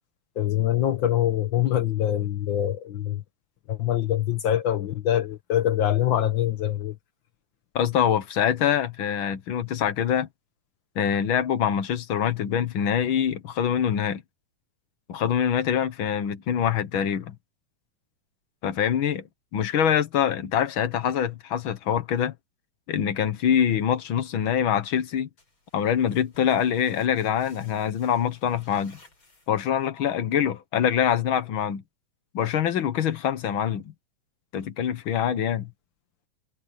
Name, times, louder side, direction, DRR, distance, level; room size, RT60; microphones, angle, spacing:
voice 1, 0.4-3.2 3.7-6.9, left 11 dB, 90° left, 1.0 m, -24 dB
voice 2, 7.7-10.3 10.9-14.2 15.1-17.3 18.6-19.2 19.5-22.3 22.9-25.3 25.7-29.0 29.5-31.8 32.3-33.9 34.5-35.7, left 9 dB, 60° left, 1.4 m, -24 dB
sound 1, 25.4-29.9, left 2 dB, 40° left, 7.6 m, -57 dB
omnidirectional pair, 3.6 m